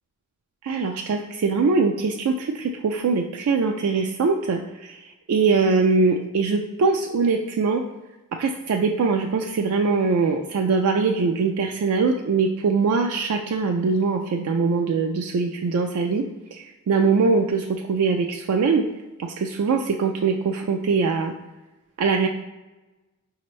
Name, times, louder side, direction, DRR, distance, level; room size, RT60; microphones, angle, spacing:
voice 1, 0.6-5.0 5.3-7.8 8.4-16.2 16.5-18.9 19.2-21.3 22.0-22.3, right 4 dB, 80° right, 3 dB, 0.3 m, -22 dB
5.1 x 2.8 x 3.1 m, 1.1 s
head